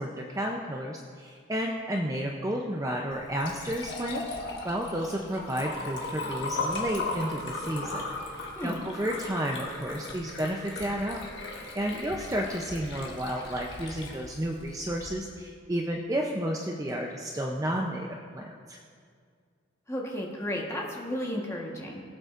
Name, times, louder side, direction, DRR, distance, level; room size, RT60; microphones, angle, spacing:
voice 1, 0.0-4.2 4.6-8.0 8.3-11.2 11.5-18.1 18.3-18.8, equal, 15° right, 0 dB, 0.5 m, -32 dB
Liquid, 3.1-15.1, left 2 dB, 60° left, 1.4 m, -37 dB
voice 2, 19.9-22.0, equal, 15° left, -2 dB, 1.2 m, -33 dB
20.5 x 7.9 x 2.5 m, 2.1 s
head